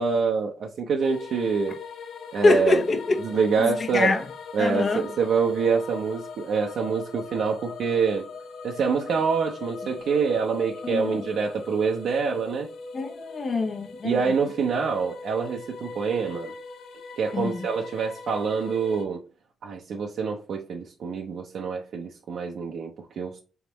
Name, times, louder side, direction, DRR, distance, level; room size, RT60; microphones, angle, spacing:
voice 1, 0.0-1.8 2.3-2.8 3.2-4.1 4.5-8.3 8.6-12.7 14.0-16.5 17.2-19.2 19.6-23.4, right 5 dB, 75° right, 0.6 m, -26 dB
sound 1, 1.0-19.0, left 4 dB, 80° left, 0.6 m, -41 dB
voice 2, 2.4-3.2 3.6-4.2 4.6-5.1 10.8-11.2 12.9-14.2 17.3-17.6, left 3 dB, 45° left, 1.0 m, -24 dB
3.9 x 3.5 x 3.0 m
cardioid pair, 85°, 0 cm